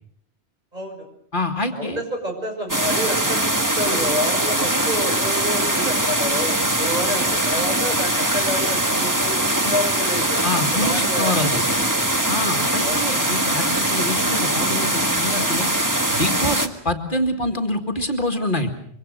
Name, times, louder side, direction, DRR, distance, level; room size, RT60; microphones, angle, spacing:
voice 1, 0.7-1.1 1.7-12.2 12.8-13.1, equal, 40° right, 2 dB, 6.3 m, -29 dB
voice 2, 1.3-2.0 9.6-9.7 10.4-11.8 12.3-15.7 16.1-18.7, left 1 dB, 50° left, 4 dB, 2.2 m, -26 dB
sound 1, 2.7-16.7, right 1 dB, 20° right, 1.5 m, -21 dB
25.0 x 24.0 x 6.6 m, 0.71 s
omnidirectional pair, 1.1 m